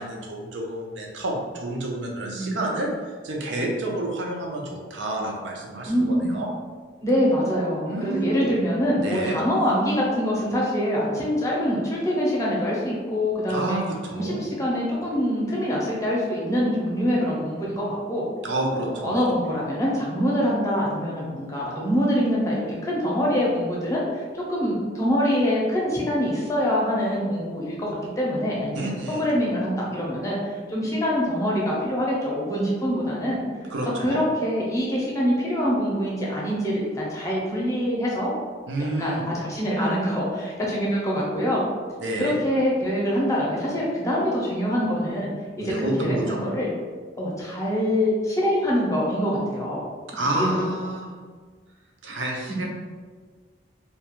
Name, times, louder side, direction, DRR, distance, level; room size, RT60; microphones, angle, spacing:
voice 1, 0.0-6.5 7.8-8.5 9.0-9.4 13.5-14.4 18.4-19.2 28.7-29.3 33.7-34.2 38.7-39.3 42.0-42.4 45.6-46.4 50.1-51.1 52.0-52.7, right 1 dB, 70° right, 0 dB, 0.5 m, -29 dB
voice 2, 5.9-6.4 7.0-13.8 14.1-18.3 18.7-28.9 29.2-33.4 34.0-38.3 39.0-41.6 42.2-45.3 45.6-46.7 47.2-49.8 50.3-50.6 52.5-52.7, equal, 15° left, -5 dB, 0.6 m, -24 dB
2.4 x 2.2 x 3.0 m, 1.5 s
head